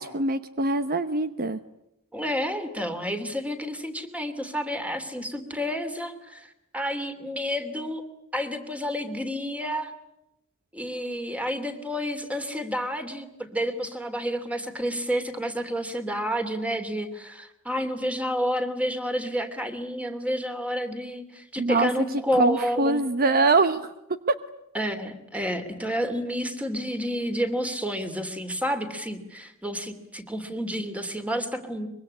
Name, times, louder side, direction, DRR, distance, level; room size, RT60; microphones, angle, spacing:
voice 1, 0.0-1.6 21.6-21.9 22.3-23.9 24.3-24.4, right 3 dB, 45° right, 11 dB, 0.9 m, -23 dB
voice 2, 2.1-8.0 8.3-9.9 10.7-23.0 24.7-31.9, equal, 5° right, 8 dB, 2.9 m, -30 dB
24.5 x 23.5 x 9.8 m, 0.85 s
head